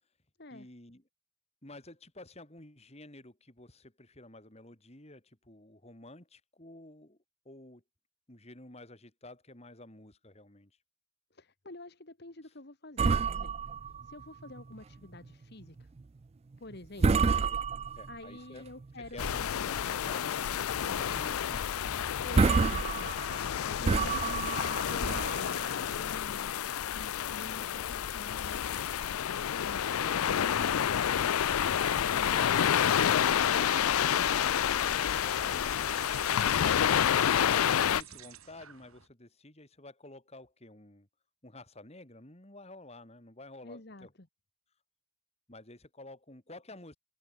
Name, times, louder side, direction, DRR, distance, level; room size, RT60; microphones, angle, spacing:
voice 1, 0.5-1.0 1.6-7.2 7.4-7.8 8.3-10.7 12.4-12.5 17.0-17.6 17.9-18.7 19.1-19.4 19.7-22.4 27.6-27.9 37.1-41.1 41.4-44.1 45.5-47.0, left 2 dB, 30° left, 2.6 m, -50 dB
voice 2, 11.3-13.5 14.0-15.9 16.6-17.1 18.1-19.7 22.2-23.1 23.6-26.5 26.9-30.8 43.6-44.3, left 2 dB, 50° left, 1.8 m, -48 dB
sound 1, 13.0-14.8 15.1-15.3 15.8-16.0 16.5-16.7 17.0-18.3 18.8-19.7 20.1-20.2 20.6-20.8 21.1-21.2 21.9-22.0 22.2-25.9, right 4 dB, 30° right, 0.3 m, -29 dB
sound 2, 19.2-38.0, left 9 dB, 85° left, 0.5 m, -29 dB
sound 3, 31.2-39.1, right 10 dB, 85° right, 7.8 m, -51 dB
head